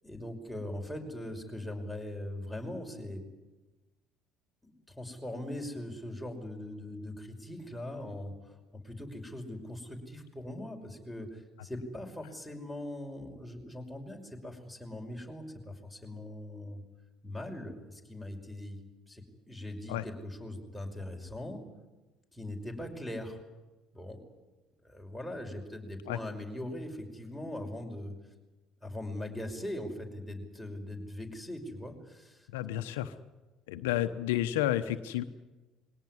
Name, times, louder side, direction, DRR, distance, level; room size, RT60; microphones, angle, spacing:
voice 1, 0.0-3.3 4.6-8.6 8.8-16.8 17.2-18.8 19.1-21.6 22.3-23.4 23.9-24.2 24.8-28.1 28.8-32.5, left 1 dB, ahead, 1 dB, 5.7 m, -41 dB
voice 2, 32.5-33.1 33.7-35.2, left 13 dB, 85° left, 10 dB, 1.0 m, -31 dB
22.0 x 17.5 x 9.7 m, 1.1 s
hypercardioid pair, 65°, 0 cm